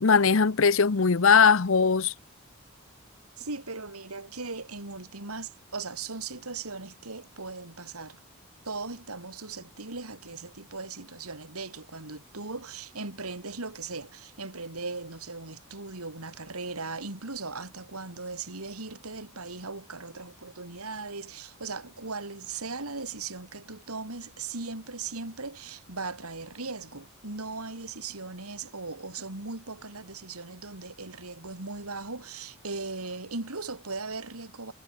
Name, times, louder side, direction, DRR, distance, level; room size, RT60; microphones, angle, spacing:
voice 1, 0.0-2.1, left 5 dB, 65° left, 0.7 m, -20 dB
voice 2, 3.4-8.2 8.6-34.7, right 3 dB, 90° right, 3.4 m, -38 dB
head